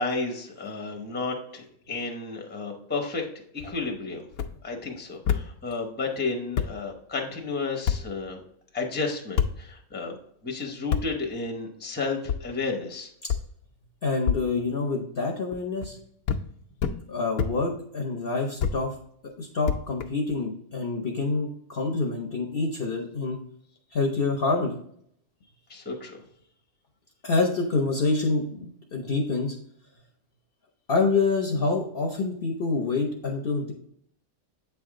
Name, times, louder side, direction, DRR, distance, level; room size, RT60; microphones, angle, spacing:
voice 1, 0.0-3.2 3.5-4.3 4.6-8.4 8.7-10.1 10.4-13.1 25.7-26.2, left 3 dB, 10° left, 2 dB, 0.7 m, -32 dB
sound 1, 4.3-4.5 5.2-5.4 6.2-6.3 6.6-6.7 7.9-8.0 9.4-9.5 10.9-11.0 12.3-12.4 13.3-13.4 14.3-14.4 15.5-15.9 16.3-16.4 16.8-17.0 17.4-17.5 18.6-18.8 19.7-20.3, left 8 dB, 90° left, 1.1 m, -26 dB
voice 2, 14.0-16.0 17.1-18.9 19.4-23.4 23.9-24.8 27.2-29.6 30.9-33.7, left 3 dB, 50° left, 1 dB, 0.8 m, -27 dB
8.1 x 3.5 x 3.6 m, 0.67 s
omnidirectional pair, 1.5 m